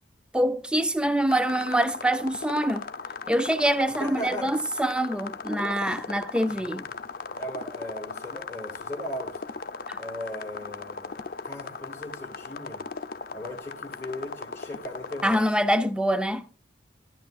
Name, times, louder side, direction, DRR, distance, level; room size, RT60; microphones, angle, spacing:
voice 1, 0.3-2.9 3.3-6.9 9.9-10.0 15.2-16.6, right 1 dB, 5° right, 0.5 m, -25 dB
sound 1, 1.3-15.4, left 4 dB, 50° left, 0.6 m, -38 dB
voice 2, 4.0-4.5 5.5-6.0 6.5-6.9 7.4-9.4 10.0-11.2 11.4-12.8 13.3-15.5, equal, 15° left, 1.7 m, -38 dB
13.5 x 11.0 x 2.4 m
head